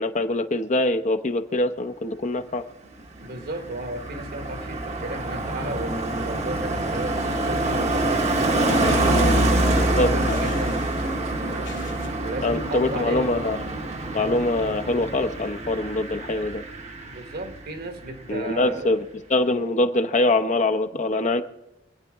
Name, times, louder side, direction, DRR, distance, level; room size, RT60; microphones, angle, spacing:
voice 1, 0.0-2.6 9.8-10.1 12.4-13.6 14.1-16.6 18.3-19.0 19.3-21.4, left 2 dB, 40° left, 0.8 m, -23 dB
Car passing by, 3.0-17.8 18.0-18.4, right 2 dB, 35° right, 1.0 m, -26 dB
voice 2, 3.2-11.8 12.2-13.4 17.1-19.0, right 1 dB, 55° right, 1.3 m, -34 dB
sound 1, 8.6-9.6 10.3-11.0 11.3-12.1, left 3 dB, 85° left, 2.5 m, -32 dB
25.5 x 9.1 x 3.6 m
head